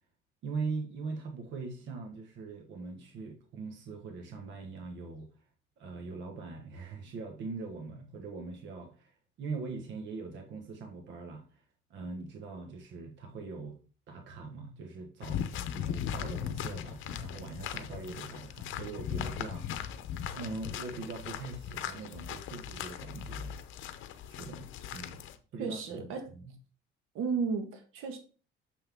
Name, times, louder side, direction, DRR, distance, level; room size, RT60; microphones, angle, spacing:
voice 1, 0.4-5.3 5.8-9.1 9.4-11.6 11.9-13.8 14.1-15.5 15.7-20.0 20.3-23.6 24.3-25.2 25.5-26.5, right 4 dB, 65° right, 1.4 m, -41 dB
sound 1, 15.2-25.4, left 9 dB, 70° left, 0.8 m, -38 dB
voice 2, 25.6-26.2 27.1-28.2, right 5 dB, 80° right, 1.6 m, -33 dB
6.7 x 5.9 x 3.6 m
cardioid pair, 135°, 21 cm